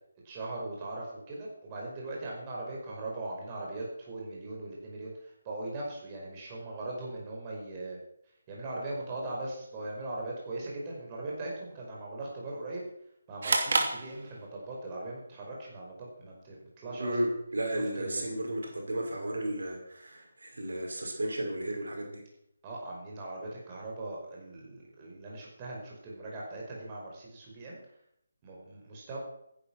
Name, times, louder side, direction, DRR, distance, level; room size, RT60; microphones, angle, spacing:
voice 1, 0.2-8.0 8.5-12.8 13.3-17.2 17.7-18.2 22.6-27.8 28.4-29.2, right 2 dB, 20° right, -3 dB, 5.2 m, -40 dB
sound 1, 13.4-14.8, right 3 dB, 50° right, 3.0 m, -29 dB
voice 2, 16.9-22.2, right 1 dB, 80° right, 1 dB, 5.3 m, -33 dB
15.0 x 10.5 x 6.1 m, 0.74 s
figure-of-eight pair, 165°, 0 cm